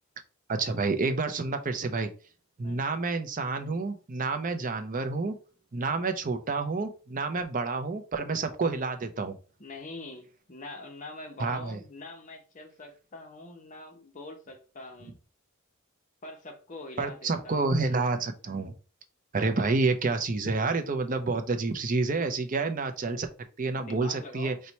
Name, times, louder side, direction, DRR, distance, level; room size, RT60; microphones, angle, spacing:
voice 1, 0.5-2.1 2.6-5.4 5.7-9.4 11.4-11.8 17.0-18.7 19.3-23.3 23.6-24.5, right 3 dB, 35° right, 0.5 m, -29 dB
voice 2, 9.6-15.2 16.2-17.7 23.8-24.6, left 2 dB, 35° left, 0.7 m, -44 dB
4.3 x 2.2 x 4.0 m
head